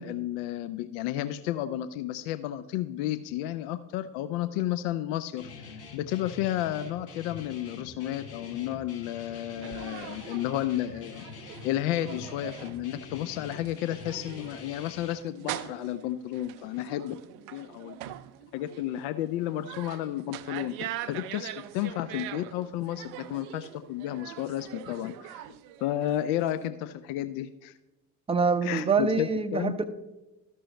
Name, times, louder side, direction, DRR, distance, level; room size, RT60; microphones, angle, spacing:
voice 1, 0.0-17.2 17.5-17.9 18.5-25.5 25.8-27.7 28.6-29.7, left 13 dB, 55° left, 12 dB, 0.5 m, -32 dB
Guitar, 5.4-15.1, left 5 dB, 75° left, 1.2 m, -45 dB
sound 1, 9.6-26.7, right 12 dB, 60° right, 0.6 m, -43 dB
voice 2, 28.3-29.8, right 5 dB, 15° right, 11 dB, 0.6 m, -25 dB
13.0 x 6.1 x 3.0 m, 1.0 s
figure-of-eight pair, 50°, 48 cm